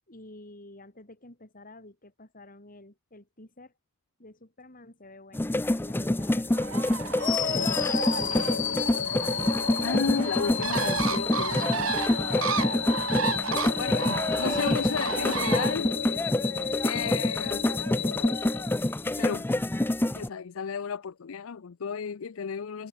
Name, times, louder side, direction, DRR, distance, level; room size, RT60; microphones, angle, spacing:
voice 1, 0.1-3.7 4.2-7.7 8.2-9.2, left 2 dB, 45° left, 5.5 m, -49 dB
sound 1, 5.3-20.3, left 1 dB, 10° left, 0.5 m, -27 dB
Bird, 6.5-15.7, right 6 dB, 80° right, 1.6 m, -33 dB
sound 2, 7.2-19.3, left 8 dB, 65° left, 1.8 m, -32 dB
voice 2, 9.8-11.9 12.3-12.9 13.8-16.0 16.8-17.6 19.2-19.5 19.8-19.9 20.1-22.9, left 6 dB, 85° left, 0.5 m, -33 dB
head